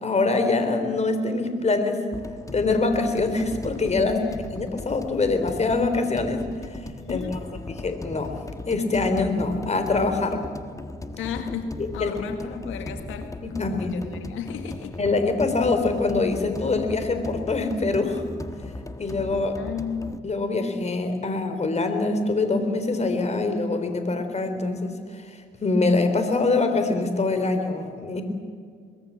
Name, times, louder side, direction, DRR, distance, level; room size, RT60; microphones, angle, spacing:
voice 1, 0.0-2.0 2.5-4.2 4.5-6.4 6.7-6.8 7.1-7.2 7.7-8.4 8.7-10.5 12.0-12.1 13.4-13.9 15.0-18.2 19.0-19.6 20.2-28.2, left 3 dB, 35° left, 7 dB, 3.8 m, -24 dB
sound 1, 2.1-20.2, left 2 dB, 15° left, 1.5 m, -38 dB
voice 2, 7.0-7.5 11.2-15.0 19.6-20.3, left 7 dB, 90° left, 7 dB, 1.8 m, -34 dB
24.0 x 21.0 x 7.5 m, 2.1 s
cardioid pair, 90°, 20 cm